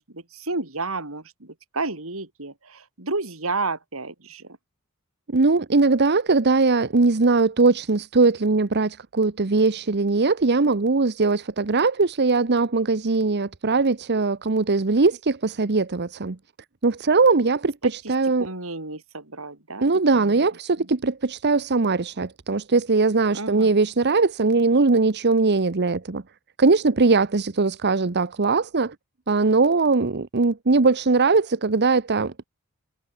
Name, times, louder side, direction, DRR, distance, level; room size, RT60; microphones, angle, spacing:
voice 1, 0.0-4.6 17.8-18.1 18.4-19.9 20.1-20.4 20.8-20.9 23.3-23.7, right 3 dB, 70° right, 4.0 m, -31 dB
voice 2, 5.3-16.4 16.8-18.5 19.8-26.2 26.6-28.9 29.3-32.4, right 3 dB, 50° right, 0.9 m, -20 dB
head